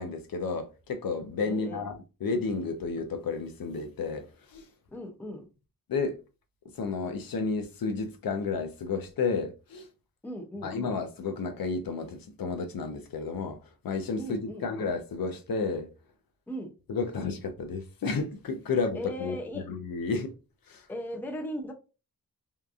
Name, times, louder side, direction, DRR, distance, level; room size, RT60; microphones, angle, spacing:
voice 1, 0.0-1.9 2.2-4.6 5.9-6.1 6.8-9.9 10.6-13.6 13.8-15.9 16.9-19.4 19.7-20.3 20.7-20.8, left 4 dB, 65° left, 0.5 m, -31 dB
voice 2, 1.5-1.8 4.9-5.5 10.2-10.7 14.2-14.7 16.5-16.7 18.9-19.7 20.9-21.7, equal, 5° left, 0.4 m, -37 dB
2.7 x 2.3 x 2.3 m
wide cardioid pair, 150°, 37 cm